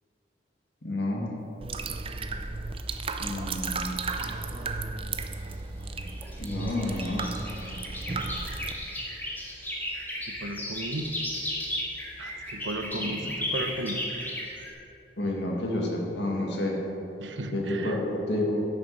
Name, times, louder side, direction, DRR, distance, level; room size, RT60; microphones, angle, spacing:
voice 1, 0.8-1.3 3.2-4.0 6.4-7.3 13.0-13.2 15.2-16.8 17.5-18.7, left 1 dB, 70° left, -1 dB, 1.9 m, -30 dB
sound 1, 1.6-8.7, right 3 dB, 30° right, 0.5 m, -34 dB
sound 2, 5.1-14.7, left 1 dB, 10° left, 1.8 m, -35 dB
voice 2, 10.3-11.1 12.2-14.0 17.2-18.0, right 1 dB, 90° right, 6 dB, 0.9 m, -35 dB
10.5 x 7.0 x 6.7 m, 2.8 s
head